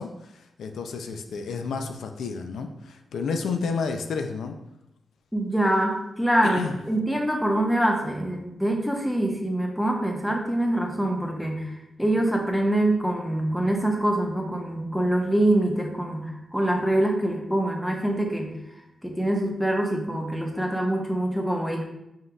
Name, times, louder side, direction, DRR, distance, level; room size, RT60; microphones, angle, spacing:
voice 1, 0.0-4.6 6.4-6.8, left 5 dB, 85° left, 5 dB, 0.3 m, -31 dB
voice 2, 5.3-11.7 12.0-18.5 19.0-21.8, right 1 dB, 5° left, 1 dB, 0.8 m, -25 dB
5.2 x 3.7 x 2.3 m, 0.88 s
cardioid pair, 75°, 0 cm